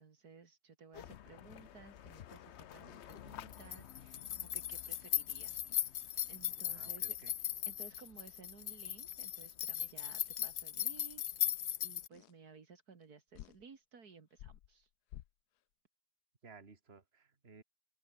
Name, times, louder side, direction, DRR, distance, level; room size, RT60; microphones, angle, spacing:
voice 1, 0.0-5.5 5.8-6.0 6.3-7.2 7.7-14.9, right 5 dB, 70° right, 2.6 m, -57 dB
sound 1, 0.9-12.1, left 10 dB, 55° left, 0.8 m, -39 dB
sound 2, 2.8-3.0 5.7-6.4 6.8-7.1 7.9-8.2 9.3-9.4 10.4-10.7 12.1-12.4 13.0-13.1 13.3-13.7 14.3-15.6, left 13 dB, 80° left, 1.3 m, -56 dB
voice 2, 6.7-7.3 16.4-17.6, right 4 dB, 40° right, 2.5 m, -57 dB
open air
omnidirectional pair, 1.7 m